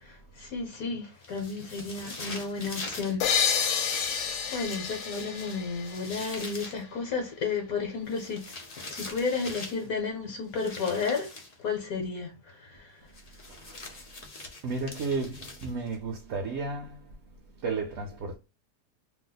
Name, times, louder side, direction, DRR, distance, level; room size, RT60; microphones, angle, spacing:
voice 1, 0.0-3.2 3.6-8.5 8.9-11.3 11.6-13.0, left 4 dB, 65° left, 1.2 m, -33 dB
sound 1, 1.2-3.2 3.8-6.8 8.1-9.9 10.5-11.6 13.1-15.9, left 2 dB, 45° left, 0.5 m, -43 dB
sound 2, 3.2-6.8, left 7 dB, 85° left, 1.2 m, -30 dB
voice 2, 4.0-4.5 13.1-14.2 14.6-18.4, right 4 dB, 65° right, 0.9 m, -35 dB
2.8 x 2.1 x 3.8 m
omnidirectional pair, 1.7 m